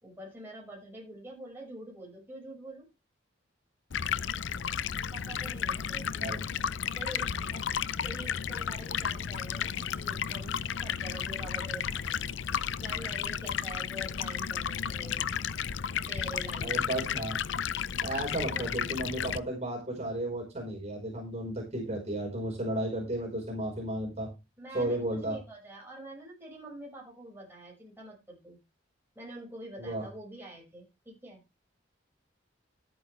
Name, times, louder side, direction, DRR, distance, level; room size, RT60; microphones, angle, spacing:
voice 1, 0.0-2.9 5.1-6.3 7.0-7.7 8.0-12.4 12.8-15.3 16.1-17.1 18.4-18.9 24.6-28.6 29.2-31.4, right 1 dB, 10° right, -2 dB, 5.8 m, -46 dB
Stream, 3.9-19.4, left 8 dB, 65° left, 0.5 m, -33 dB
voice 2, 16.6-17.4 18.0-24.3 24.7-25.4 29.8-30.1, right 1 dB, 35° right, -1 dB, 5.0 m, -33 dB
13.0 x 9.0 x 3.4 m, 0.26 s
head